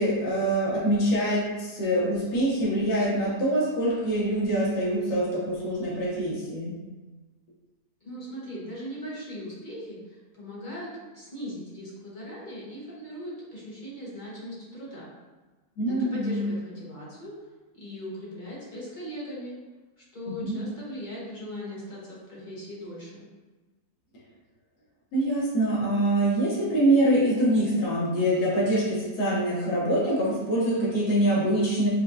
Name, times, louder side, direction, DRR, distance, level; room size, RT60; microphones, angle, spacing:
voice 1, 0.0-6.8 15.8-16.4 20.3-20.6 25.1-31.9, right 1 dB, 80° left, -5 dB, 1.4 m, -24 dB
voice 2, 8.0-15.1 15.9-17.3 17.7-19.6 20.0-23.2, equal, 45° left, -7 dB, 0.6 m, -39 dB
4.3 x 2.2 x 2.5 m, 1.2 s
omnidirectional pair, 1.7 m